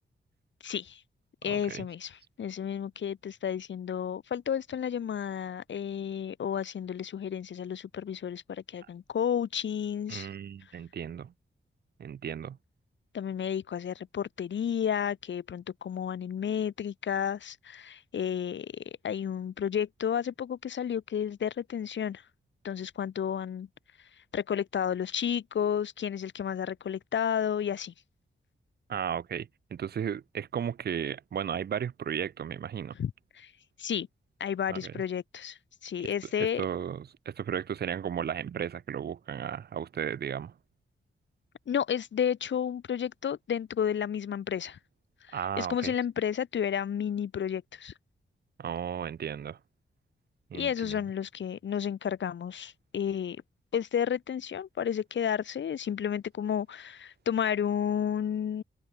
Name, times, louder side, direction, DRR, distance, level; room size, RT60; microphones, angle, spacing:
voice 1, 0.6-1.0 1.4-10.3 13.1-22.2 22.6-23.7 24.0-27.9 32.9-33.5 33.8-34.1 34.4-36.6 41.7-44.8 45.2-47.9 50.5-53.4 53.7-58.6, left 8 dB, 70° left, 0.9 m, -32 dB
voice 2, 1.5-1.8 10.1-11.3 12.0-12.6 28.9-32.9 34.7-34.9 36.6-40.5 45.3-45.9 48.6-49.6 50.5-51.0, right 8 dB, 55° right, 0.7 m, -34 dB
wide cardioid pair, 140°, 20 cm